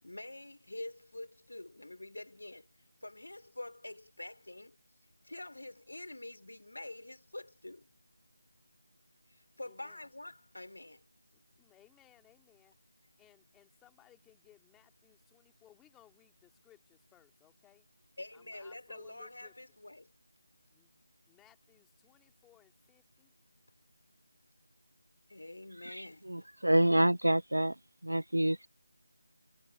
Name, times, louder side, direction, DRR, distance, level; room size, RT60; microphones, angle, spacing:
voice 1, 0.0-2.7 3.0-4.8 5.2-7.9 9.3-11.0 18.2-20.1 25.3-26.2, left 2 dB, 75° left, 4.0 m, -46 dB
voice 2, 9.6-10.0 11.3-12.8 13.2-17.9 18.3-19.8 20.7-20.9 21.3-23.3, left 13 dB, 5° left, 3.3 m, -64 dB
voice 3, 25.8-27.8 28.0-28.7, right 1 dB, 85° right, 0.6 m, -28 dB
figure-of-eight pair, 165°, 0 cm